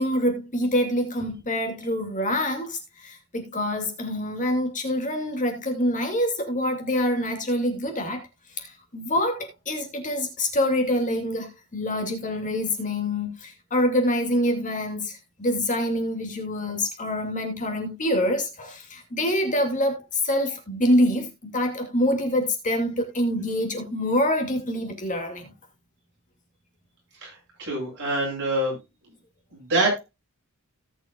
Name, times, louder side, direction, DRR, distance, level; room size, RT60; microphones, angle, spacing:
voice 1, 0.0-8.2 8.6-25.5, left 1 dB, 35° left, 2.5 m, -26 dB
voice 2, 27.6-28.8 29.5-30.0, right 2 dB, 55° right, 7.2 m, -25 dB
18.5 x 6.2 x 2.4 m
head